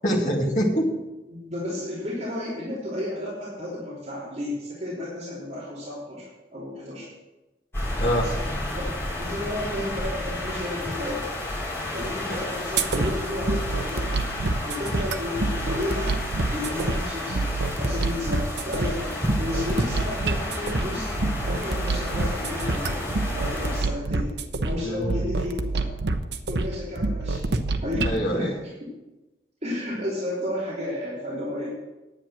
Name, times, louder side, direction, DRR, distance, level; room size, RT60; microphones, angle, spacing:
voice 1, 0.0-0.9 8.0-8.2 24.8-25.2 28.0-28.5, equal, 45° left, -2 dB, 2.1 m, -24 dB
voice 2, 1.3-7.1 8.0-11.3 11.9-14.1 14.6-17.5 17.8-21.1 21.4-23.0 23.3-24.4 24.6-26.0 26.5-27.4 27.8-28.9 29.6-31.7, left 1 dB, 40° right, -9 dB, 3.4 m, -32 dB
sound 1, 7.7-23.8, left 1 dB, 15° left, 3.4 m, -32 dB
sound 2, 12.8-28.2, right 3 dB, 75° right, 0.7 m, -27 dB
10.5 x 8.9 x 6.0 m, 1.1 s
head